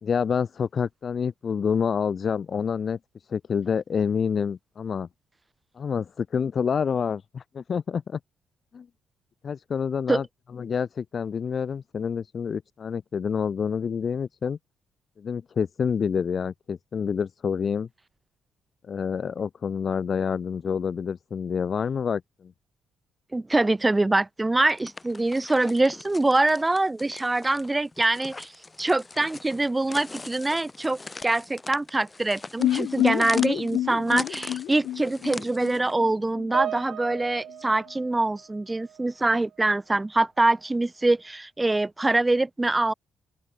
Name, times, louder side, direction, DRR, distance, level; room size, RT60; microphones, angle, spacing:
voice 1, 0.0-3.0 3.3-5.1 5.8-8.2 8.7-8.9 9.4-10.2 10.5-14.6 15.2-17.9 18.9-22.5, left 6 dB, 45° left, 0.5 m, -27 dB
voice 2, 23.3-28.5 28.8-42.9, right 2 dB, 15° right, 1.8 m, -24 dB
sound 1, 24.6-35.9, left 3 dB, 20° left, 2.1 m, -42 dB
sound 2, 32.6-36.5 36.7-36.8 37.1-37.2, left 12 dB, 80° left, 1.0 m, -28 dB
Piano, 36.5-39.2 39.4-39.8 40.6-40.7, right 11 dB, 70° right, 5.5 m, -37 dB
open air
cardioid pair, 90°, 0 cm